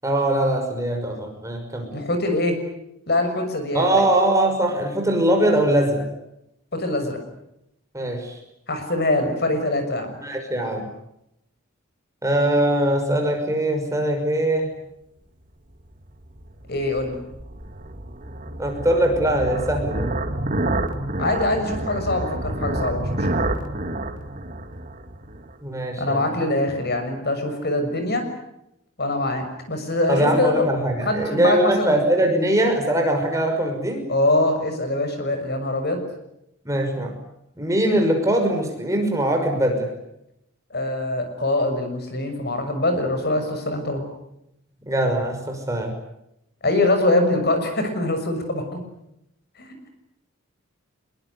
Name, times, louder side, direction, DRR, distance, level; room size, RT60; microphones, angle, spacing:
voice 1, 0.0-1.9 3.7-6.1 7.9-8.4 10.2-10.9 12.2-14.7 18.6-20.1 25.6-26.3 30.1-34.1 36.6-37.1 37.6-39.9 44.9-45.9, right 1 dB, 15° right, 3 dB, 5.9 m, -21 dB
voice 2, 1.9-2.6 3.1-4.0 6.7-7.2 8.7-10.1 16.7-17.2 21.2-23.4 26.0-28.2 29.0-30.7 31.0-31.9 34.1-36.0 40.7-44.0 46.6-48.8 49.6-49.9, left 2 dB, 50° left, 7 dB, 6.5 m, -23 dB
sound 1, 16.0-25.5, right 1 dB, 40° right, 2.4 m, -28 dB
26.0 x 22.5 x 9.7 m, 0.82 s
head